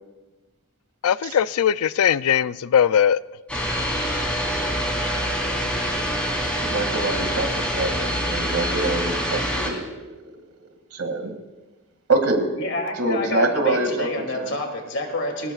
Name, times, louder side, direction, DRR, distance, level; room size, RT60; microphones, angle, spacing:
voice 1, 1.0-3.2, left 8 dB, 80° left, 0.4 m, -19 dB
sound 1, 3.5-9.7, equal, 5° left, 3.8 m, -25 dB
voice 2, 6.6-10.3 10.9-11.3 12.1-12.5 13.0-14.1 14.3-14.5, right 2 dB, 75° right, 2.3 m, -25 dB
voice 3, 12.6-15.5, left 2 dB, 55° left, 2.8 m, -28 dB
23.0 x 19.0 x 2.4 m
head